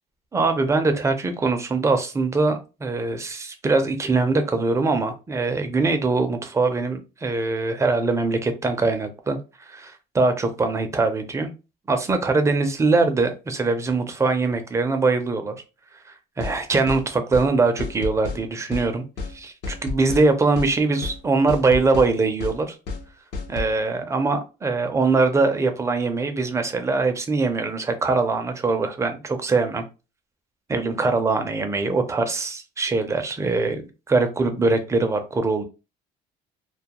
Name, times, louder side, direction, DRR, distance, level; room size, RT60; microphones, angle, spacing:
voice 1, 0.3-9.4 9.7-11.5 11.9-15.5 16.4-19.0 19.3-22.8 23.5-29.8 30.7-35.6, right 3 dB, 15° right, 7 dB, 0.4 m, -22 dB
sound 1, 16.4-16.6 16.9-17.0 17.3-17.5 17.8-18.4 18.7-18.9 19.2-19.3 19.6-20.3 20.6-20.7 21.0-21.2 21.5-22.1 22.4-22.6 22.9-23.0 23.3-23.7, left 4 dB, 70° left, 0.8 m, -30 dB
2.3 x 2.2 x 2.8 m, 0.30 s
cardioid pair, 135°, 18 cm